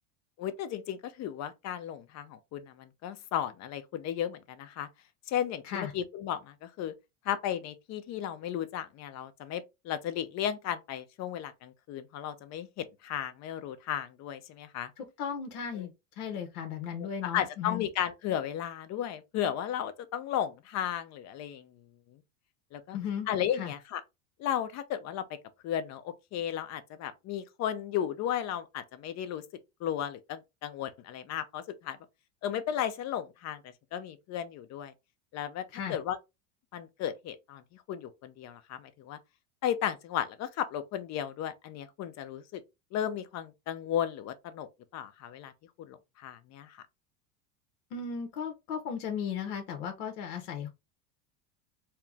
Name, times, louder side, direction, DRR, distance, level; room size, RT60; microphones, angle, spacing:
voice 1, 0.4-4.9 5.3-6.9 7.3-14.9 17.3-21.6 22.7-23.0 23.3-24.0 24.4-25.2 25.6-29.4 29.8-32.0 32.4-33.6 33.9-34.9 35.3-35.6 35.9-36.2 36.7-37.6 37.9-39.2 39.6-42.6 42.9-45.5 45.8-46.0 46.2-46.7, left 10 dB, 35° left, 0.6 m, -34 dB
voice 2, 15.0-15.9 16.1-17.8 22.9-23.3 23.5-23.7 35.7-36.0 47.9-50.7, left 7 dB, 70° left, 1.0 m, -36 dB
4.4 x 2.1 x 3.5 m
supercardioid pair, 120°, 46 cm